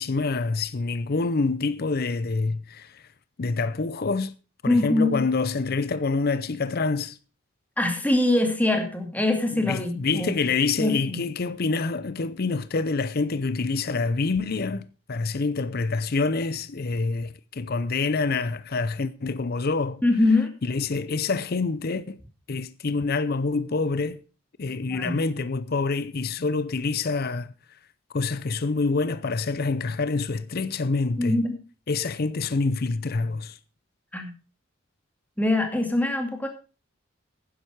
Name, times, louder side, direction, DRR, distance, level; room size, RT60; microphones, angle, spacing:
voice 1, 0.0-3.0 3.4-4.3 4.6-7.2 9.5-20.0 20.6-22.2 22.5-24.2 24.6-27.5 28.1-31.4 31.9-33.6, left 4 dB, 50° left, 0.6 m, -26 dB
voice 2, 4.7-5.2 7.8-10.3 10.8-11.2 20.0-20.5 24.9-25.2 31.2-31.5 34.1-34.3 35.4-36.5, left 2 dB, 10° left, 2.3 m, -23 dB
11.5 x 10.0 x 4.7 m
head